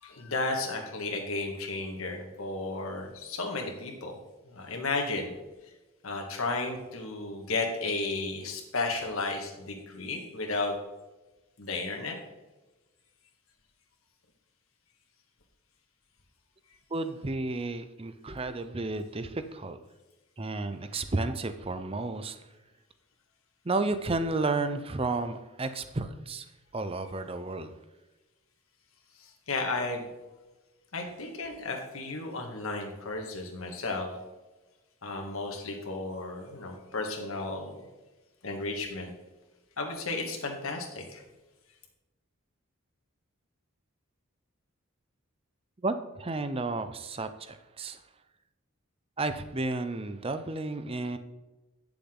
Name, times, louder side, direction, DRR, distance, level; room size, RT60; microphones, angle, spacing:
voice 1, 0.0-4.2 4.4-5.3 6.0-10.7 11.6-12.2 29.2-30.0 30.9-34.1 35.0-37.9 38.4-39.1 39.8-41.2, left 3 dB, 75° left, 2 dB, 1.8 m, -33 dB
voice 2, 16.9-19.8 20.4-22.4 23.6-26.5 26.7-27.7 45.8-48.0 49.2-51.2, right 3 dB, 25° right, 10 dB, 0.6 m, -32 dB
9.8 x 7.0 x 3.8 m, 1.1 s
head